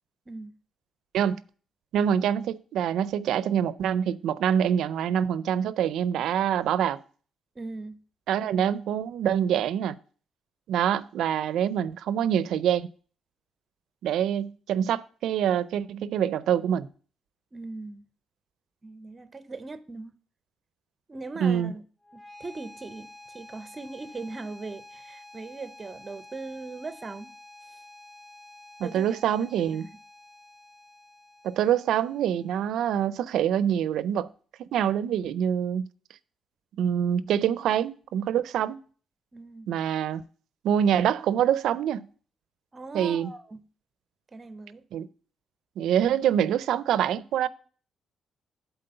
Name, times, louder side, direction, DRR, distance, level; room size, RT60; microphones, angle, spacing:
voice 1, 0.3-0.6 7.6-8.0 17.5-18.0 18.8-20.1 21.1-21.8 22.1-27.3 28.8-29.1 29.7-29.9 39.3-39.7 42.7-43.6 44.3-44.8, right 3 dB, 25° right, 0.6 m, -39 dB
voice 2, 1.9-7.0 8.3-10.0 10.7-12.9 14.0-16.9 21.4-21.7 28.8-29.8 31.4-34.3 34.6-35.8 36.8-38.8 39.7-40.2 40.6-42.1 42.9-43.3 44.9-45.1 45.8-47.5, right 9 dB, 85° right, 0.4 m, -25 dB
sound 1, 22.0-33.0, left 2 dB, 20° left, 1.9 m, -50 dB
7.6 x 4.2 x 6.7 m
cardioid pair, 115°, 0 cm